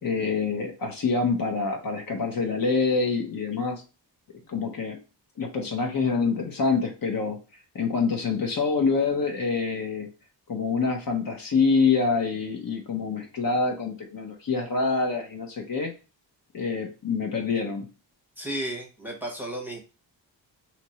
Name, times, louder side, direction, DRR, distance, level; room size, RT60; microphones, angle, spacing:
voice 1, 0.0-3.8 4.3-5.0 5.4-7.4 7.7-10.1 10.5-15.9 16.5-17.9, left 4 dB, 50° left, 3 dB, 0.9 m, -26 dB
voice 2, 18.4-19.8, right 1 dB, 5° right, 0 dB, 0.9 m, -33 dB
3.0 x 2.5 x 4.2 m, 0.32 s
wide cardioid pair, 130°, 43 cm